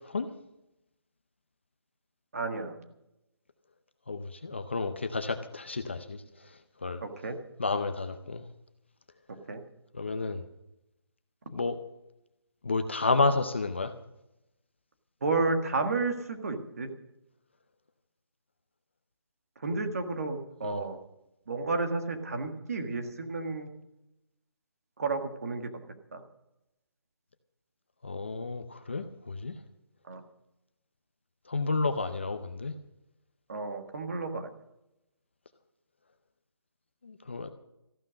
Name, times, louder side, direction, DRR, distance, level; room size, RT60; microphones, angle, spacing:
voice 1, 2.3-2.7 7.0-7.3 9.5-9.6 15.2-16.9 19.6-21.0 21.5-23.7 25.0-25.7 26.1-26.2 30.1-30.2 33.5-34.5, right 3 dB, 35° right, 6 dB, 1.7 m, -31 dB
voice 2, 4.1-6.2 6.8-7.0 7.6-8.4 9.9-10.4 11.5-11.8 12.6-13.9 20.6-20.8 28.0-29.5 31.5-32.7 37.0-37.5, left 3 dB, 25° left, 10 dB, 0.6 m, -31 dB
14.5 x 11.5 x 6.3 m, 0.87 s
hypercardioid pair, 180°, 14 cm